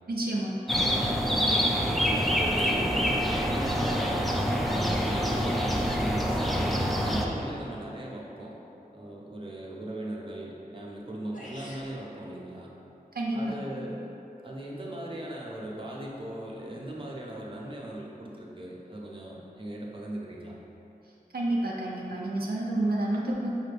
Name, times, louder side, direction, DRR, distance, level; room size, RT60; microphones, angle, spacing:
voice 1, 0.1-0.5 13.2-13.6 21.3-23.5, right 1 dB, 85° right, -3 dB, 0.4 m, -29 dB
sound 1, 0.7-7.3, equal, ahead, 0.4 m, -26 dB
voice 2, 0.8-1.2 1.8-8.6 8.9-12.7 13.3-14.0 14.4-20.5, right 1 dB, 35° right, -3 dB, 0.6 m, -39 dB
sound 2, 11.0-11.1 11.3-11.9, left 1 dB, 55° left, 0.6 m, -45 dB
5.0 x 2.5 x 3.3 m, 2.8 s
wide cardioid pair, 50°, 15 cm